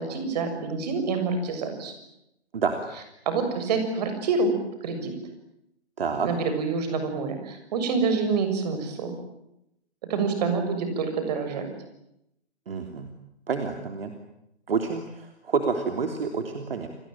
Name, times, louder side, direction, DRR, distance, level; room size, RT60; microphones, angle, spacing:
voice 1, 0.0-1.9 3.2-4.6 4.8-5.1 6.2-9.1 10.1-11.7, right 4 dB, 40° right, 7 dB, 6.8 m, -27 dB
voice 2, 6.0-6.3 12.7-13.1 13.5-14.1 14.7-16.9, right 5 dB, 60° right, 5 dB, 3.3 m, -28 dB
29.5 x 20.5 x 9.1 m, 0.82 s
figure-of-eight pair, 140°, 33 cm